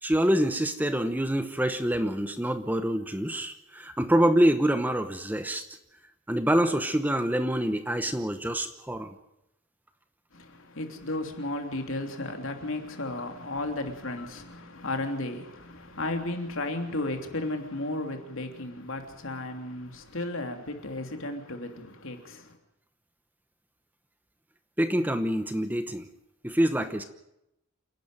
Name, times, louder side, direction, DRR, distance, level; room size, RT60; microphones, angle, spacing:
voice 1, 0.0-5.7 6.3-9.1 24.8-26.1 26.4-27.0, right 1 dB, 10° right, 0.9 m, -26 dB
voice 2, 10.3-22.6, left 2 dB, 65° left, 3.1 m, -34 dB
28.0 x 11.5 x 9.1 m
head